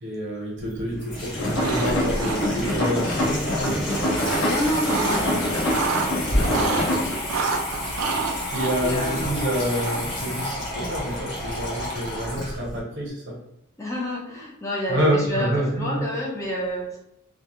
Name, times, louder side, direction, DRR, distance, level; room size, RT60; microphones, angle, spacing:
voice 1, 0.0-3.9 6.5-6.8 8.5-13.4 14.9-16.1, equal, 60° right, -2 dB, 0.8 m, -27 dB
Water tap faucet / Sink (filling or washing), 0.6-12.8, left 1 dB, 55° left, 0.9 m, -31 dB
sound 1, 1.3-7.2, left 1 dB, 80° left, 0.6 m, -26 dB
sound 2, 1.5-1.9 2.1-2.8 3.7-5.2 5.6-6.9 7.3-10.2, right 4 dB, 75° right, 0.3 m, -28 dB
voice 2, 4.3-5.7 6.1-8.0 8.8-9.4 13.8-17.0, equal, 15° left, -4 dB, 0.5 m, -30 dB
2.1 x 2.1 x 2.9 m, 0.77 s
head